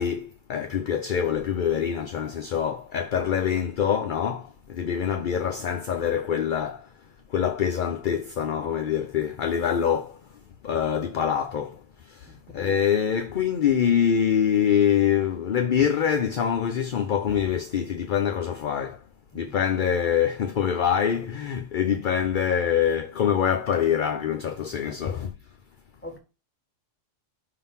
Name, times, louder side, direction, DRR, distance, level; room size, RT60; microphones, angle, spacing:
voice 1, 0.0-6.9 7.3-10.2 10.6-19.0 19.3-25.3, left 8 dB, 50° left, 0.6 m, -25 dB
voice 2, 12.3-12.8 19.3-19.5 26.0-26.2, left 1 dB, 10° left, 1.6 m, -43 dB
5.8 x 3.8 x 5.6 m
omnidirectional pair, 1.3 m